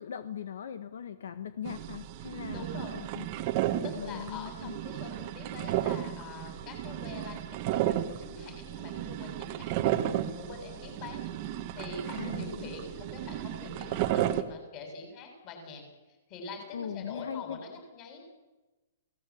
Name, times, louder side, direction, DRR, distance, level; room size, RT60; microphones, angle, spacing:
voice 1, 0.0-3.3 3.9-4.8 12.2-12.7 13.9-14.1 16.7-17.6, left 8 dB, 70° left, 10 dB, 1.7 m, -40 dB
sound 1, 1.7-14.4, right 12 dB, 30° right, 1.6 m, -33 dB
voice 2, 2.5-2.9 3.8-15.8 16.3-18.2, left 4 dB, 25° left, 4 dB, 7.6 m, -44 dB
29.0 x 18.5 x 8.8 m, 1.1 s
hypercardioid pair, 175°, 0 cm